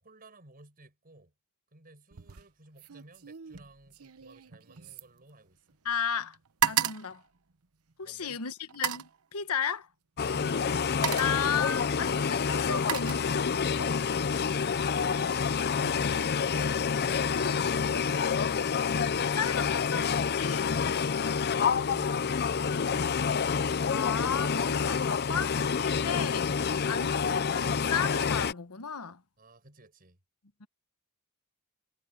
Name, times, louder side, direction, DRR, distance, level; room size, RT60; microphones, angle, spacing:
voice 1, 0.0-1.3 1.7-5.8 8.0-8.4 10.3-11.4 14.3-15.4 17.0-18.3 21.1-23.5 29.4-30.2, right 2 dB, 40° right, 6.3 m, -55 dB
sound 1, 2.1-2.5 2.8-5.9 6.2-8.1 8.7-9.2 10.2-10.4 10.8-11.5 12.3-13.7 14.1-14.5, right 10 dB, 75° right, 1.0 m, -34 dB
voice 2, 5.8-6.4 6.6-7.2 8.0-9.9 11.2-14.0 17.3-18.1 19.3-20.8 23.9-26.6 26.8-29.2 30.6-30.7, left 6 dB, 85° left, 1.2 m, -34 dB
sound 2, 10.2-28.5, left 6 dB, 50° left, 0.6 m, -28 dB
head